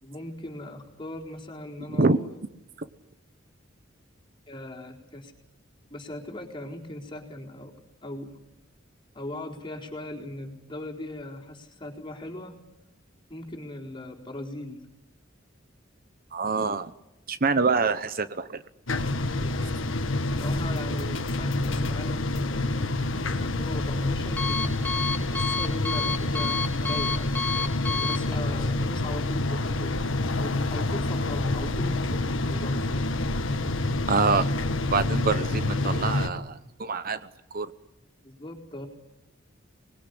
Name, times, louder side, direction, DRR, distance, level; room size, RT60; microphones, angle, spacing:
voice 1, 0.0-2.3 4.5-5.3 5.9-7.7 8.0-8.4 9.1-12.5 13.3-14.9 19.4-19.9 20.4-22.9 23.4-24.8 25.3-27.4 27.9-33.1 38.2-38.9, left 1 dB, 25° left, 0 dB, 4.2 m, -39 dB
voice 2, 16.3-16.9 17.3-18.6 34.1-34.5 34.9-37.2 37.5-37.7, right 4 dB, 45° right, 12 dB, 0.9 m, -25 dB
sound 1, 18.9-36.3, left 2 dB, 80° left, 1.6 m, -27 dB
Alarm, 22.9-29.3, left 4 dB, 10° left, 2.9 m, -32 dB
25.5 x 21.0 x 9.9 m, 0.92 s
head